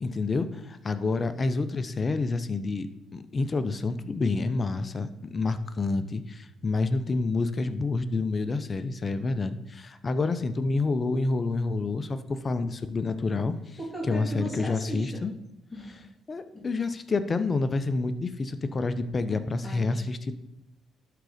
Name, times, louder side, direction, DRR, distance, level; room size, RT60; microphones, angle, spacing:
voice 1, 0.0-2.9 3.1-13.5 14.1-15.3 16.3-20.3, left 3 dB, 35° left, 11 dB, 0.7 m, -28 dB
voice 2, 13.8-15.2 15.7-16.0 16.5-16.7 19.6-20.0, right 1 dB, 10° left, -3 dB, 2.5 m, -37 dB
11.5 x 3.9 x 5.0 m, 0.87 s
supercardioid pair, 60°, 0 cm